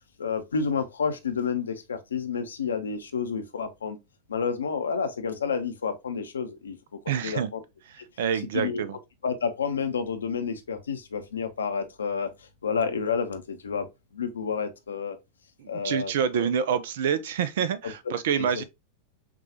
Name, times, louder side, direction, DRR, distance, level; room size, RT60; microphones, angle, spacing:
voice 1, 0.2-4.0 4.3-6.8 7.2-7.6 8.5-8.8 9.2-13.9 14.1-15.2 15.7-16.5 18.4-18.5, left 6 dB, 70° left, 0.6 m, -30 dB
voice 2, 7.1-7.5 8.2-9.0 15.6-18.6, right 7 dB, 55° right, 0.5 m, -27 dB
5.9 x 2.3 x 2.8 m
figure-of-eight pair, 90°, 0 cm